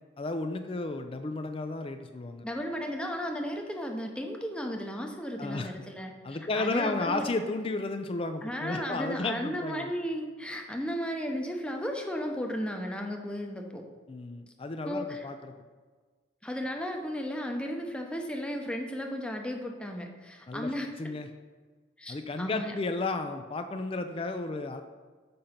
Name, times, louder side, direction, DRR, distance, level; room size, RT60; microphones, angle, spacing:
voice 1, 0.2-2.4 5.4-5.7 6.2-9.9 14.1-15.5 20.5-20.7 21.0-21.3 22.1-24.8, left 3 dB, 30° left, 7 dB, 0.4 m, -33 dB
voice 2, 2.4-7.2 8.4-13.8 14.8-15.3 16.4-21.2 22.0-22.7, equal, 5° left, 2 dB, 0.7 m, -35 dB
6.9 x 5.3 x 5.7 m, 1.4 s
head